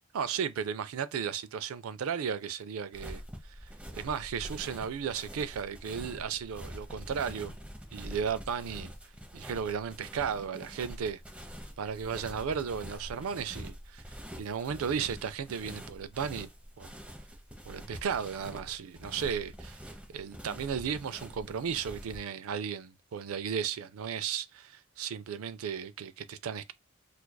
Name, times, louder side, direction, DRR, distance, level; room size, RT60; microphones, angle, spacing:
voice 1, 0.1-7.5 7.9-8.9 9.3-11.2 11.8-14.0 14.4-16.5 16.8-16.9 17.7-19.8 20.1-26.7, right 7 dB, 75° right, 0.4 m, -35 dB
sound 1, 2.9-22.2, equal, 5° right, 0.7 m, -45 dB
4.5 x 2.4 x 2.2 m
head